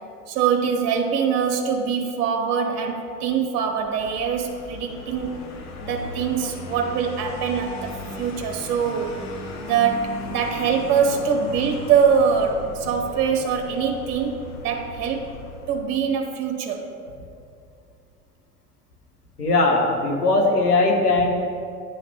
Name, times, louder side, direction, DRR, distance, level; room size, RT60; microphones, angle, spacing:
voice 1, 0.3-5.3 5.8-9.2 9.6-15.2 15.7-16.8, right 6 dB, 50° right, 3 dB, 1.1 m, -23 dB
Vehicle, 3.8-16.0, left 3 dB, 40° left, 0.9 m, -37 dB
voice 2, 19.4-21.3, left 2 dB, 85° left, 0 dB, 1.2 m, -19 dB
9.4 x 3.2 x 6.1 m, 2.4 s
figure-of-eight pair, 75°, 45 cm